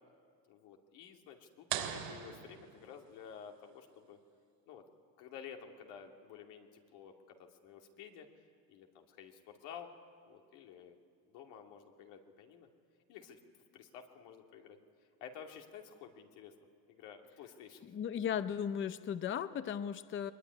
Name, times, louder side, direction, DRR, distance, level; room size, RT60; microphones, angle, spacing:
voice 1, 0.5-4.2 4.7-4.8 5.2-8.3 8.7-9.9 10.2-11.0 11.3-12.7 13.1-13.4 13.7-14.8 15.2-16.6 16.9-17.9, left 7 dB, 85° left, 3 dB, 2.7 m, -52 dB
sound 1, 1.7-3.4, right 10 dB, 75° right, 3.7 m, -41 dB
voice 2, 17.9-20.3, left 8 dB, 30° left, 12 dB, 0.7 m, -36 dB
22.5 x 21.0 x 9.7 m, 2.2 s
cardioid pair, 140°, 40 cm